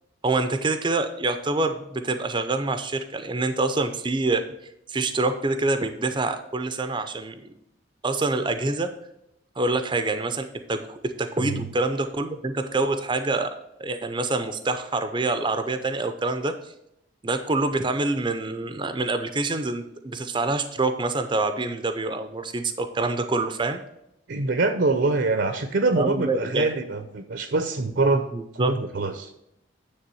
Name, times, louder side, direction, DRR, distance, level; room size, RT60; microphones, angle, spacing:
voice 1, 0.2-4.4 4.9-7.5 8.0-8.9 9.6-16.7 17.2-23.8 26.0-26.7 28.3-28.7, right 2 dB, 25° right, 8 dB, 0.5 m, -26 dB
voice 2, 24.3-28.2 28.5-29.3, right 3 dB, 65° right, 8 dB, 0.7 m, -24 dB
9.6 x 3.4 x 6.9 m, 0.82 s
head